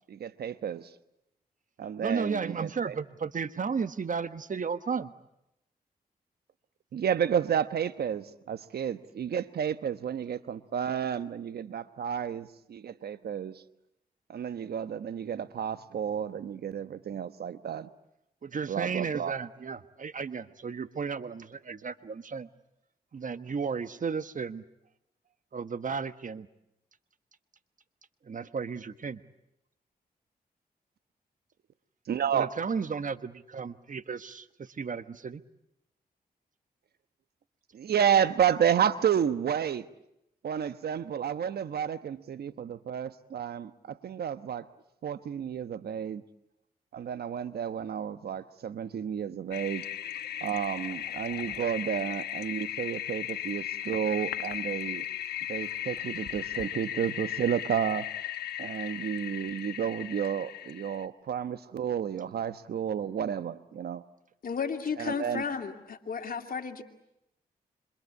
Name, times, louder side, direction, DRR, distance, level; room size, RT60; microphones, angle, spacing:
voice 1, 0.1-0.9 1.8-3.0 6.9-13.6 14.3-17.9 18.7-19.3 32.1-32.5 37.7-39.8 40.4-44.7 45.0-46.2 46.9-49.8 50.4-55.0 55.5-58.1 58.6-64.0 65.0-65.4, right 8 dB, 75° right, 13 dB, 1.1 m, -31 dB
voice 2, 2.0-5.1 18.4-22.5 23.1-24.6 25.5-26.5 28.2-29.2 32.3-35.4, right 5 dB, 55° right, 12 dB, 1.3 m, -34 dB
Toilet flush, 49.5-61.1, left 12 dB, 90° left, 1.1 m, -36 dB
voice 3, 64.4-66.8, left 6 dB, 65° left, 5 dB, 2.7 m, -33 dB
27.0 x 26.0 x 8.4 m, 0.85 s
cardioid pair, 50°, 16 cm